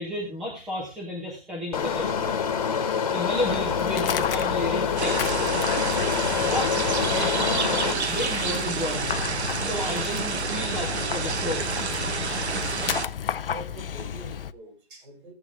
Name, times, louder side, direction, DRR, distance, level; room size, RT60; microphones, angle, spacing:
voice 1, 0.0-2.3 3.1-5.2 6.5-9.2 9.6-11.7, left 1 dB, ahead, -3 dB, 0.7 m, -32 dB
sound 1, 1.7-7.9, left 6 dB, 35° left, 1.4 m, -26 dB
Dog, 3.3-14.5, left 8 dB, 60° left, 0.6 m, -33 dB
sound 2, 5.0-13.1, right 5 dB, 85° right, 1.2 m, -29 dB
voice 2, 13.5-15.3, right 2 dB, 50° right, 0 dB, 7.0 m, -44 dB
15.5 x 7.8 x 3.5 m, 0.29 s
hypercardioid pair, 160°, 32 cm